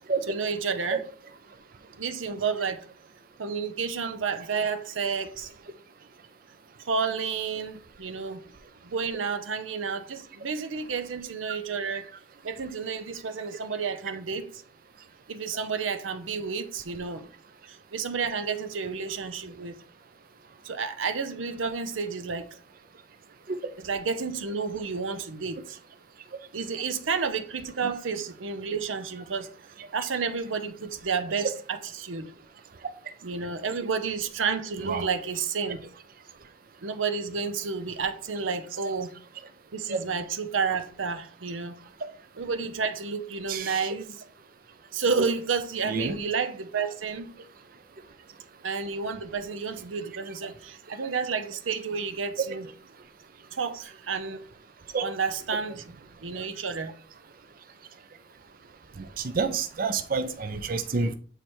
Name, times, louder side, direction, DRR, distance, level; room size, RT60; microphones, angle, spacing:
voice 1, 0.3-1.0 2.0-2.9 3.4-5.5 6.8-8.4 8.8-12.1 12.4-14.6 15.3-17.3 17.7-19.8 20.6-22.6 23.8-25.8 26.5-29.5 29.9-32.3 33.2-35.8 36.8-39.1 39.7-41.8 42.4-44.2 44.9-47.3 48.6-52.7 53.5-54.4 55.0-55.9 56.2-56.9, right 5 dB, 90° right, 0.7 m, -31 dB
voice 2, 43.5-43.9 45.9-46.2 54.9-55.0 59.0-61.1, right 4 dB, 45° right, 0.5 m, -29 dB
7.8 x 3.3 x 4.4 m
head